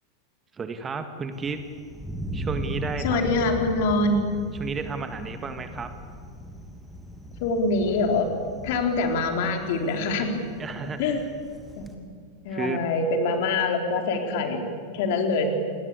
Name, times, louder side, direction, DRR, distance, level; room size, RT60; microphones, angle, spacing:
voice 1, 0.5-1.6 2.3-3.3 4.6-5.9 10.6-11.1 12.5-12.8, right 5 dB, 20° right, 8 dB, 2.0 m, -32 dB
Thunder, 1.3-11.9, equal, ahead, 3.0 m, -38 dB
voice 2, 3.0-4.2 7.4-8.3 8.6-10.4 11.0-11.2 11.8-11.9 12.4-14.6 14.9-15.5, left 3 dB, 50° left, 4 dB, 4.1 m, -24 dB
28.0 x 22.0 x 8.7 m, 2.1 s
figure-of-eight pair, 90°, 0 cm